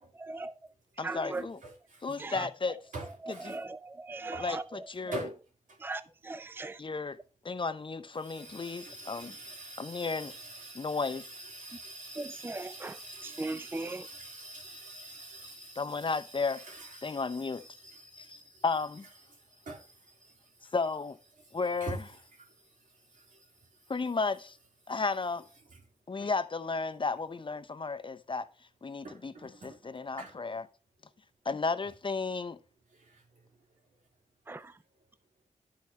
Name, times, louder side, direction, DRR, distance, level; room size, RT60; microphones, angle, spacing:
voice 1, 0.1-0.6 1.0-1.5 2.2-2.5 3.2-5.2 5.8-6.8 12.2-14.1 34.5-34.8, right 2 dB, 15° right, 0.5 m, -39 dB
voice 2, 1.0-1.6 2.0-2.8 3.3-3.5 4.4-5.3 6.8-7.2 7.4-9.3 9.8-10.3 10.7-11.2 15.8-16.6 17.0-17.6 18.2-19.1 20.7-21.2 21.5-22.1 23.9-24.6 24.9-25.4 26.1-28.5 28.8-30.7 31.4-32.6, left 4 dB, 40° left, 0.7 m, -33 dB
voice 3, 8.3-18.7 19.5-19.9 20.2-20.3 21.8-22.0 23.3-23.4 26.2-26.3 29.0-29.2 29.5-29.9 30.2-30.3 33.1-33.2, right 2 dB, 80° right, 3.4 m, -45 dB
10.5 x 4.7 x 4.4 m
cardioid pair, 60°, 13 cm